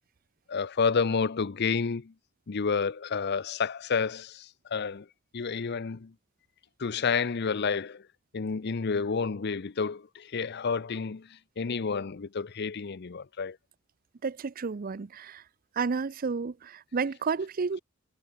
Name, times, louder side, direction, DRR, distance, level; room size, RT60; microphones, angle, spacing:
voice 1, 0.5-2.1 2.5-5.1 5.3-6.1 6.8-8.0 8.3-11.3 11.6-13.6, left 5 dB, 55° left, 0.6 m, -30 dB
voice 2, 14.2-15.4 15.8-17.8, right 5 dB, 45° right, 0.5 m, -31 dB
head